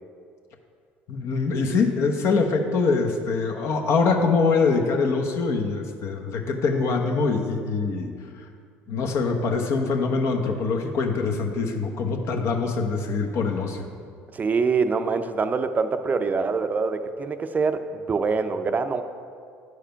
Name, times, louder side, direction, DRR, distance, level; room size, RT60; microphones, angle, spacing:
voice 1, 1.1-8.1 8.9-13.9, left 4 dB, 60° left, 3 dB, 1.0 m, -24 dB
voice 2, 14.3-17.8 18.1-19.0, right 4 dB, 30° right, 9 dB, 0.5 m, -24 dB
9.4 x 4.9 x 5.6 m, 2.3 s
supercardioid pair, 75°, 5 cm